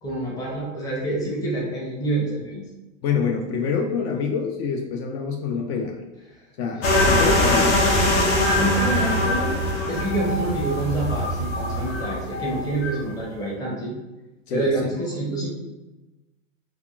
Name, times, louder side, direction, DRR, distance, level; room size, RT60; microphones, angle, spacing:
voice 1, 0.0-2.6 6.8-6.9 7.4-7.6 8.4-9.5 9.9-13.9 14.5-15.5, right 2 dB, 10° left, -4 dB, 0.6 m, -27 dB
voice 2, 3.0-6.0 6.6-7.8 14.5-14.9, left 5 dB, 55° left, 2 dB, 0.5 m, -26 dB
sound 1, 6.8-13.0, left 1 dB, 80° left, 0.9 m, -22 dB
3.4 x 2.3 x 2.3 m, 1.1 s
supercardioid pair, 140°, 39 cm